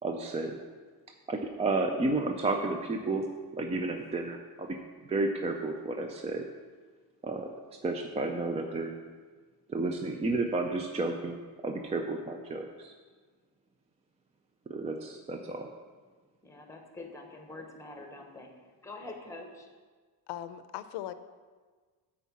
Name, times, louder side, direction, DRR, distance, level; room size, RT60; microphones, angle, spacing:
voice 1, 0.0-0.6 1.3-3.3 3.5-4.8 5.1-6.5 7.2-7.5 7.8-8.9 9.7-12.9 14.7-15.7, right 2 dB, 15° right, 3 dB, 0.3 m, -32 dB
voice 2, 16.4-19.7, left 2 dB, 5° left, 3 dB, 0.9 m, -45 dB
voice 3, 20.3-21.1, left 12 dB, 85° left, 11 dB, 0.6 m, -39 dB
9.4 x 4.6 x 7.2 m, 1.4 s
cardioid pair, 170°, 40 cm